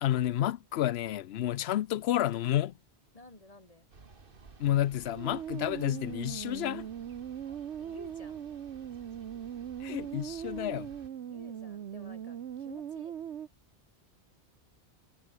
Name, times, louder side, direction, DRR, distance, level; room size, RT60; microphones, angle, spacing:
voice 1, 0.0-2.7 4.6-6.9 9.8-10.9, left 12 dB, 70° left, 0.8 m, -30 dB
voice 2, 3.1-3.9 7.8-8.5 11.3-13.2, left 2 dB, 35° left, 2.5 m, -52 dB
sound 1, 3.9-11.1, right 4 dB, 55° right, 2.0 m, -55 dB
sound 2, 5.0-13.5, right 9 dB, 85° right, 1.2 m, -40 dB
omnidirectional pair, 1.1 m